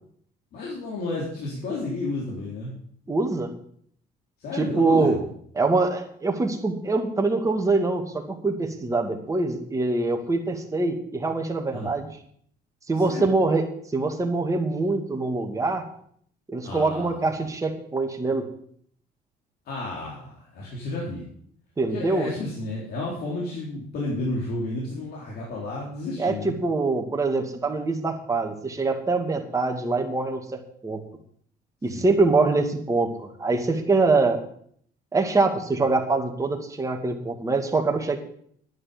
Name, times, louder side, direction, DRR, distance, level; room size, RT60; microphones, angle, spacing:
voice 1, 0.5-2.7 4.4-5.3 11.7-12.0 12.9-13.3 16.6-17.3 19.7-21.3 21.9-26.6 31.9-32.1, left 2 dB, 70° left, -4 dB, 3.8 m, -32 dB
voice 2, 3.1-3.5 4.6-5.2 5.6-12.1 12.9-13.6 13.9-15.8 16.5-18.4 21.8-22.3 26.2-31.0 31.8-34.4 35.1-38.2, right 3 dB, 20° right, 3 dB, 2.3 m, -24 dB
11.0 x 9.7 x 7.0 m, 0.62 s
cardioid pair, 110°, 17 cm